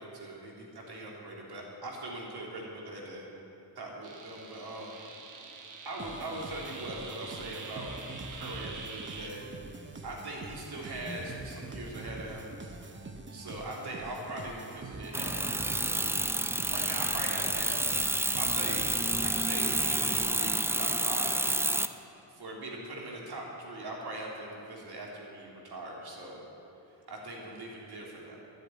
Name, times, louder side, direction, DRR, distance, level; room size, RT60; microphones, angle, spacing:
voice 1, 0.0-3.3 3.8-5.0 5.9-7.9 8.3-9.4 10.0-12.5 13.3-16.0 16.7-17.7 18.4-18.8 19.2-21.4 22.3-26.4 27.1-28.4, right 1 dB, 65° right, -2 dB, 3.6 m, -41 dB
sound 1, 4.0-9.3, right 4 dB, 45° right, 1.4 m, -45 dB
sound 2, 6.0-20.6, right 3 dB, 25° right, 1.0 m, -44 dB
sound 3, 15.1-21.9, right 1 dB, 5° right, 0.4 m, -29 dB
11.0 x 10.5 x 9.9 m, 2.9 s
cardioid pair, 100°, 42 cm